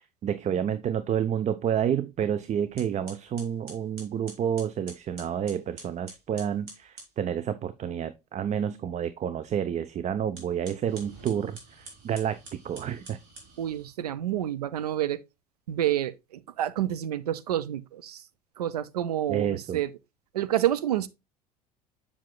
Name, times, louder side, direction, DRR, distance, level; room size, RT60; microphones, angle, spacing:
voice 1, 0.0-13.2 19.3-19.8, right 9 dB, 35° right, 0.6 m, -29 dB
sound 1, 2.2-2.4 2.8-7.1 10.2-13.9, right 2 dB, 60° right, 3.8 m, -48 dB
voice 2, 13.6-15.2 15.7-18.2 18.6-19.9 20.3-21.1, right 12 dB, 80° right, 0.6 m, -28 dB
7.4 x 7.1 x 2.2 m
hypercardioid pair, 65°, 20 cm